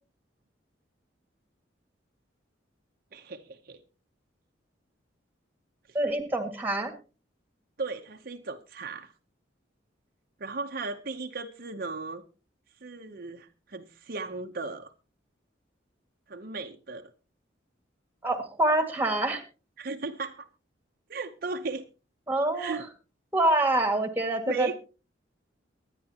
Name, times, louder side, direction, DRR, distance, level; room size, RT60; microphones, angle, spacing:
voice 1, 3.1-3.8 5.9-6.0 7.8-9.1 10.4-12.2 12.8-14.9 16.3-17.1 19.8-20.5 21.1-21.9 22.5-22.9 24.5-24.7, right 3 dB, 50° right, 5 dB, 0.8 m, -36 dB
voice 2, 5.9-6.9 18.2-19.4 22.3-22.8 23.3-24.7, right 1 dB, 10° right, 7 dB, 1.9 m, -26 dB
23.5 x 9.9 x 2.9 m, 0.33 s
head